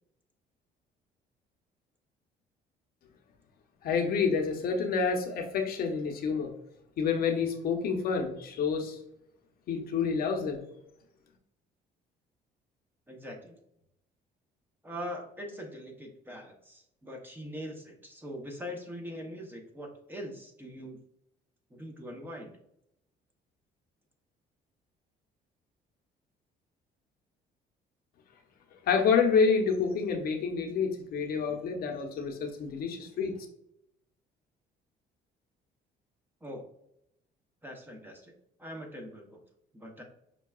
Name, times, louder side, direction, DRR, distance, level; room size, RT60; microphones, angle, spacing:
voice 1, 3.8-6.5 7.0-9.0 9.7-10.6 28.9-33.3, left 5 dB, 60° left, 3 dB, 0.7 m, -28 dB
voice 2, 13.1-13.6 14.8-21.0 21.7-22.6 36.4-36.6 37.6-38.3 38.6-39.4 39.7-40.0, equal, 10° right, 1 dB, 0.8 m, -42 dB
5.3 x 2.3 x 2.3 m, 0.78 s
cardioid pair, 110°, 17 cm